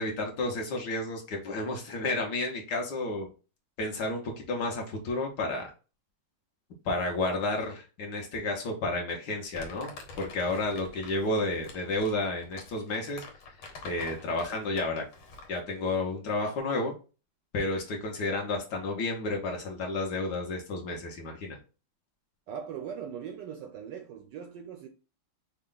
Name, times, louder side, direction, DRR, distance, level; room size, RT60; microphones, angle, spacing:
voice 1, 0.0-3.3 3.8-5.7 6.8-13.2 13.8-15.0 15.5-16.9 17.5-21.6, left 2 dB, 60° left, 1.5 m, -31 dB
Crumpling crinkling, 9.5-15.6, left 3 dB, 85° left, 2.0 m, -47 dB
voice 2, 22.5-24.9, right 8 dB, 75° right, 1.1 m, -40 dB
5.4 x 2.3 x 3.8 m
omnidirectional pair, 2.3 m